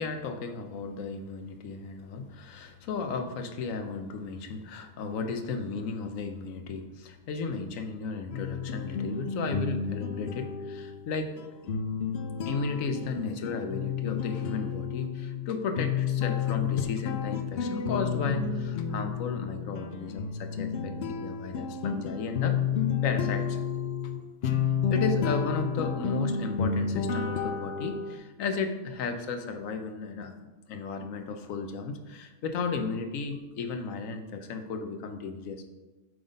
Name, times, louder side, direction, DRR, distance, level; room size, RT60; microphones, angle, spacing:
voice 1, 0.0-11.5 12.5-22.6 23.0-23.6 24.9-35.6, left 4 dB, 85° left, 7 dB, 1.1 m, -34 dB
sound 1, 8.3-28.2, left 6 dB, 60° left, 0.7 m, -31 dB
7.8 x 4.0 x 5.2 m, 1.2 s
omnidirectional pair, 1.4 m